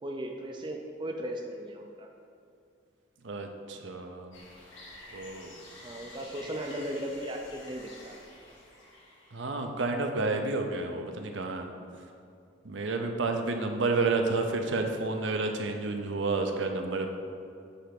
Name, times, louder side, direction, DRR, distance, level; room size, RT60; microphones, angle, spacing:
voice 1, 0.0-2.1 5.8-8.3, equal, 25° right, 2 dB, 0.5 m, -37 dB
voice 2, 3.2-4.4 5.1-5.5 9.3-11.7 12.6-17.1, right 3 dB, 75° right, 4 dB, 0.7 m, -30 dB
sound 1, 4.3-9.6, left 1 dB, 90° left, 1.7 m, -50 dB
8.3 x 3.4 x 5.9 m, 2.4 s
head